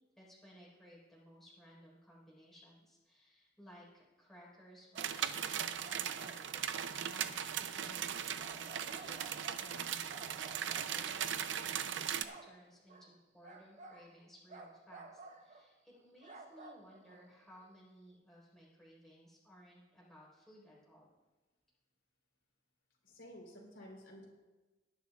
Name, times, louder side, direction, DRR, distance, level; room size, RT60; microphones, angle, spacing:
voice 1, 0.2-10.4 10.8-21.1, equal, ahead, -5 dB, 4.3 m, -59 dB
sound 1, 4.8-7.1 7.8-8.1 8.4-9.8 10.1-11.2 11.6-12.6 12.9-13.1 13.4-14.1 14.5-15.7 15.9-17.7, right 3 dB, 40° right, 0.8 m, -54 dB
sound 2, 5.0-12.2, right 9 dB, 75° right, 0.5 m, -38 dB
voice 2, 23.0-24.3, equal, 75° left, -2 dB, 3.7 m, -52 dB
19.0 x 11.0 x 2.4 m, 1.2 s
head